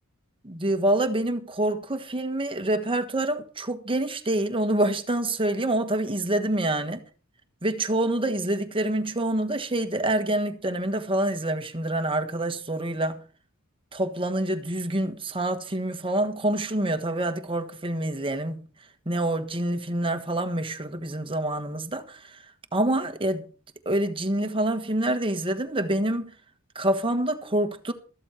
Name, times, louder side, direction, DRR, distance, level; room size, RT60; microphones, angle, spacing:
voice 1, 0.4-7.0 7.6-13.2 13.9-18.6 19.0-22.2 22.7-23.5 23.8-26.3 26.7-27.9, right 1 dB, 25° right, 1.4 m, -26 dB
14.0 x 13.0 x 4.5 m
head